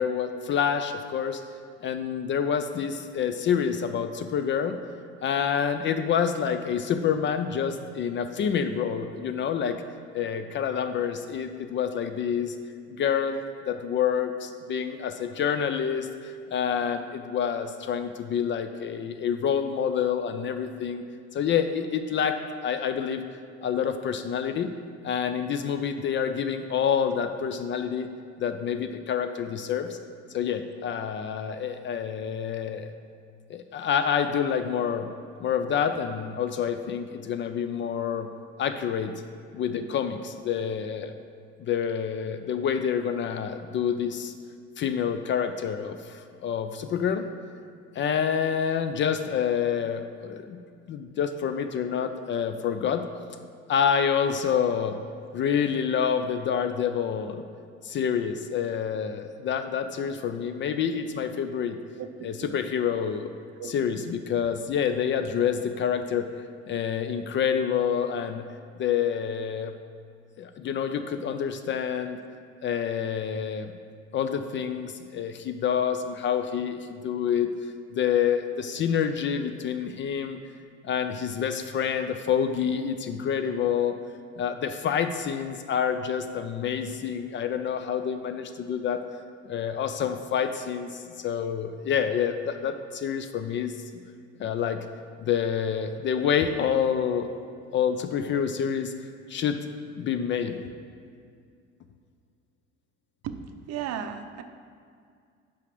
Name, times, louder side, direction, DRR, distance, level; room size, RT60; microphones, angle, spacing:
voice 1, 0.0-1.4 1.8-4.8 5.2-9.8 10.1-12.6 12.9-21.0 21.3-22.4 22.6-23.2 23.6-24.7 25.0-28.1 28.4-30.0 30.3-32.9 33.5-35.1 35.4-38.3 38.6-39.1 39.5-41.1 41.6-44.3 44.8-47.3 47.9-50.6 50.9-53.0 53.7-55.0 55.3-57.4 57.8-61.8 62.2-63.3 63.7-66.3 66.7-68.4 68.8-69.7 70.4-72.2 72.6-73.7 74.1-77.5 77.9-80.4 80.8-84.0 84.4-89.0 89.5-94.0 94.4-94.8 95.2-97.3 97.7-98.9 99.3-99.6 100.0-100.6, left 7 dB, 35° left, 8 dB, 0.4 m, -27 dB
voice 2, 62.0-62.5 63.6-63.7 103.2-103.3 103.7-104.4, right 9 dB, 45° right, 8 dB, 0.6 m, -35 dB
5.7 x 5.0 x 6.0 m, 2.2 s
hypercardioid pair, 65°, 36 cm